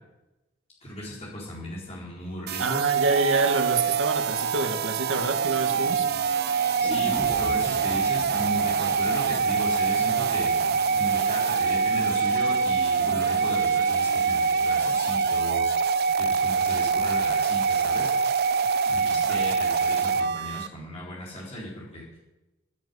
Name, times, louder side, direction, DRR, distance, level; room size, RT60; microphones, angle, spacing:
voice 1, 0.8-2.9 6.8-10.5 11.0-15.9 16.2-18.1 18.9-22.2, equal, 35° left, -6 dB, 4.3 m, -36 dB
sound 1, 2.5-20.7, right 5 dB, 55° right, 0.5 m, -24 dB
voice 2, 2.6-6.1 19.3-19.5, right 3 dB, 85° right, 7 dB, 1.6 m, -27 dB
sound 2, 5.6-15.4, right 1 dB, 20° right, 1.9 m, -44 dB
sound 3, 6.8-10.9 11.2-11.3, equal, 15° left, 1.1 m, -41 dB
13.0 x 8.1 x 9.5 m, 1.0 s
head